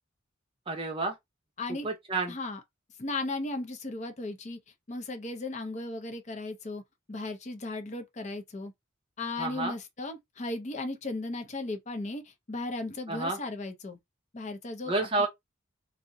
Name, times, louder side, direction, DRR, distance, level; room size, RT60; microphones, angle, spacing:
voice 1, 0.7-1.1 1.8-2.4 9.4-9.7 13.1-13.4 14.9-15.3, right 2 dB, 25° right, 0.7 m, -29 dB
voice 2, 1.6-1.9 2.3-2.6 3.0-4.6 4.9-6.8 7.1-8.7 9.2-14.0 14.3-15.3, left 2 dB, 35° left, 0.5 m, -36 dB
2.6 x 2.1 x 3.7 m
head